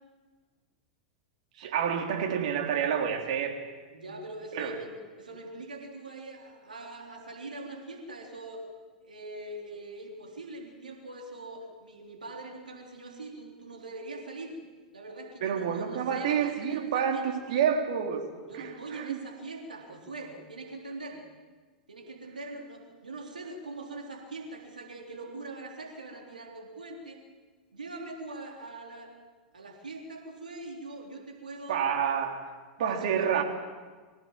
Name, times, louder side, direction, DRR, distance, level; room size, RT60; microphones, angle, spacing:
voice 1, 1.6-3.6 4.5-4.8 15.4-18.2 18.6-19.2 31.7-33.4, right 8 dB, 65° right, 3 dB, 3.4 m, -29 dB
voice 2, 3.9-8.6 9.0-14.5 14.9-17.3 18.5-21.2 21.9-27.2 27.7-29.1 29.5-31.8 32.9-33.3, right 2 dB, 90° right, 0 dB, 3.8 m, -42 dB
24.5 x 16.0 x 7.5 m, 1.4 s
hypercardioid pair, 95°, 4 cm